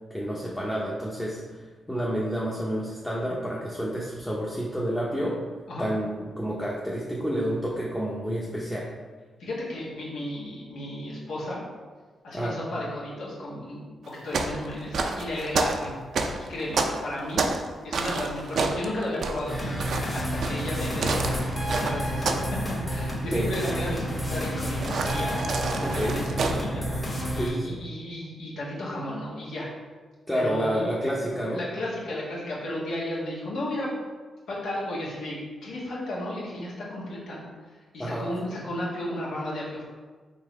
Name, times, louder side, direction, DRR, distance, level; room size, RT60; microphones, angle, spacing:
voice 1, 0.1-5.4 5.8-8.9 12.3-12.6 23.3-23.5 25.8-26.2 27.3-27.8 30.3-31.6 38.0-38.3, equal, 10° left, -5 dB, 0.8 m, -29 dB
voice 2, 9.4-11.6 12.2-17.5 17.8-25.3 25.8-26.8 27.3-29.7 30.3-30.8 31.5-33.9 34.5-37.4 37.9-39.8, left 1 dB, 80° left, -6 dB, 1.4 m, -34 dB
sound 1, 14.0-17.7 17.9-22.5 22.8-23.1 24.8-26.6, right 4 dB, 70° right, 0.4 m, -29 dB
sound 2, 19.5-27.5, equal, 25° left, 1.3 m, -30 dB
3.9 x 2.8 x 4.8 m, 1.4 s
cardioid pair, 65°, 0 cm